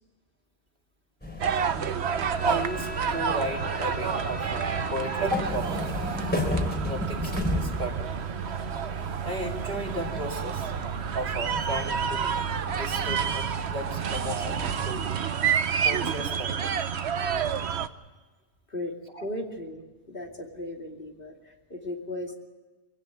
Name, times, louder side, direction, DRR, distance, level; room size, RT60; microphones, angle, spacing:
sound 1, 1.2-15.0, left 1 dB, 10° left, 3.3 m, -35 dB
sound 2, 1.4-17.9, right 7 dB, 80° right, 1.2 m, -29 dB
voice 1, 2.4-6.0 6.8-8.1 9.2-10.7 11.1-12.4 12.7-15.1 15.8-16.7 19.1-19.2, right 1 dB, 60° right, 1 dB, 2.9 m, -34 dB
voice 2, 19.2-22.3, left 1 dB, 55° left, 2 dB, 2.8 m, -36 dB
24.0 x 16.0 x 9.1 m, 1.3 s
omnidirectional pair, 1.1 m